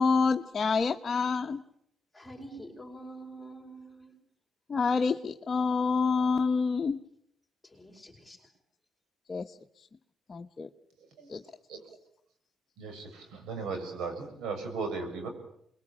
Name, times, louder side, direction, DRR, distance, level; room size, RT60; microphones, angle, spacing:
voice 1, 0.0-1.6 4.7-7.0 9.3-9.4 10.3-10.7 11.3-11.4, left 5 dB, 35° left, 4 dB, 1.1 m, -27 dB
voice 2, 2.1-4.1 7.6-8.5, right 2 dB, 10° left, 0 dB, 5.1 m, -46 dB
voice 3, 12.8-15.3, right 4 dB, 85° right, 5 dB, 6.9 m, -36 dB
26.5 x 22.0 x 8.7 m, 0.72 s
cardioid pair, 90°, 0 cm